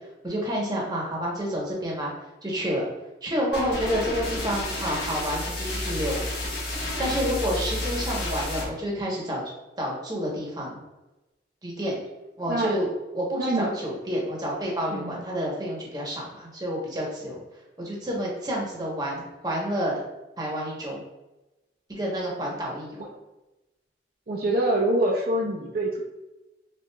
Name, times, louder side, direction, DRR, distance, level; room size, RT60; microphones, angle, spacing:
voice 1, 0.2-2.1 2.4-2.8 3.2-6.2 7.0-9.4 9.8-10.8 11.6-11.9 12.4-12.9 13.1-17.4 17.8-20.0 20.4-21.0 21.9-23.0, equal, 25° right, -3 dB, 1.0 m, -29 dB
sound 1, 3.5-8.7, left 1 dB, 65° left, 1.1 m, -31 dB
voice 2, 13.4-13.7 14.9-15.2 23.0-23.1 24.3-26.0, right 1 dB, 55° right, -3 dB, 0.6 m, -25 dB
5.7 x 2.5 x 2.3 m, 1.0 s
head